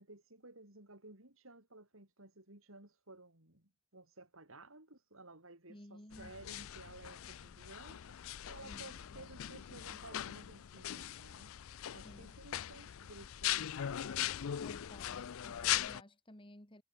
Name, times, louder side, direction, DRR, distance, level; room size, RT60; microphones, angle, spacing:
voice 1, 0.0-8.2 8.5-11.5 11.9-14.0, right 2 dB, 70° right, 4.9 m, -55 dB
voice 2, 5.7-6.3 8.6-9.2 12.0-12.4 14.6-16.8, left 1 dB, 25° left, 2.5 m, -55 dB
sound 1, 6.1-16.0, left 11 dB, 75° left, 0.4 m, -40 dB
head